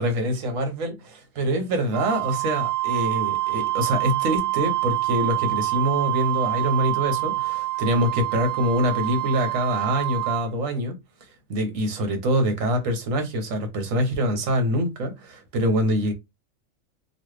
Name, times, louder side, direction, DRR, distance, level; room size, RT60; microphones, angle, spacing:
voice 1, 0.0-11.0 11.5-16.1, equal, 70° right, 1.3 m, -25 dB
Wind instrument woodwind instrument, 1.9-10.5, right 17 dB, 50° right, 0.9 m, -26 dB
3.1 x 2.4 x 3.1 m
omnidirectional pair, 1.4 m